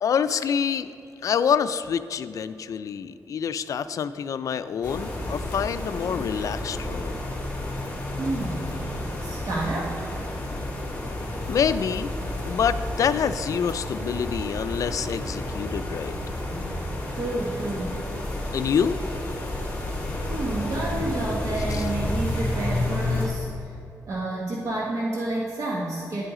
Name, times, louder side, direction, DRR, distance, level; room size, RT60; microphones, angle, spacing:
voice 1, 0.0-0.9 1.2-7.2 11.5-12.1 12.4-16.1 18.5-19.0 21.7-21.8, left 7 dB, 65° left, 13 dB, 0.3 m, -26 dB
sound 1, 4.8-23.3, left 1 dB, 25° left, 1.9 m, -31 dB
voice 2, 8.2-8.8 9.2-10.2 17.1-18.0 20.2-23.5 24.1-26.2, right 2 dB, 55° right, -3 dB, 1.0 m, -29 dB
10.0 x 7.9 x 3.7 m, 2.7 s
wide cardioid pair, 135°, 6 cm